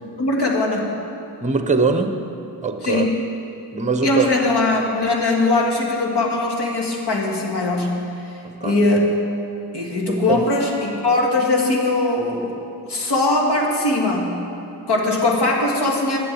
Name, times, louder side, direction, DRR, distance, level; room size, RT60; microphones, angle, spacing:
voice 1, 0.2-0.9 2.8-3.2 4.0-8.0 8.6-9.1 9.7-12.5 12.8-14.4 14.9-16.2, left 2 dB, 70° left, -1 dB, 1.9 m, -20 dB
voice 2, 1.4-2.2 2.6-3.1 3.7-4.3 8.6-8.7 10.1-10.4, right 4 dB, 15° right, 6 dB, 0.8 m, -21 dB
9.9 x 7.0 x 7.8 m, 2.7 s
cardioid pair, 65°, 42 cm